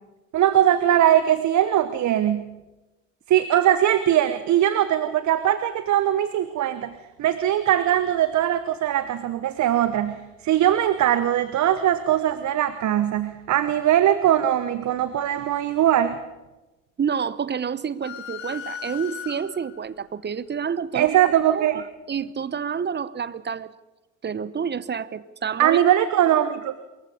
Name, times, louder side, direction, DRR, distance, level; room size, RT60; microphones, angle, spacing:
voice 1, 0.3-2.5 3.3-16.2 20.9-21.8 25.6-26.7, right 11 dB, 50° right, 13 dB, 1.1 m, -21 dB
voice 2, 17.0-21.2 21.5-23.7 24.2-25.8, right 7 dB, 30° right, 17 dB, 1.0 m, -29 dB
sound 1, 18.0-19.8, left 9 dB, 80° left, 2.1 m, -37 dB
23.5 x 21.0 x 5.5 m, 1.1 s
figure-of-eight pair, 50°, 38 cm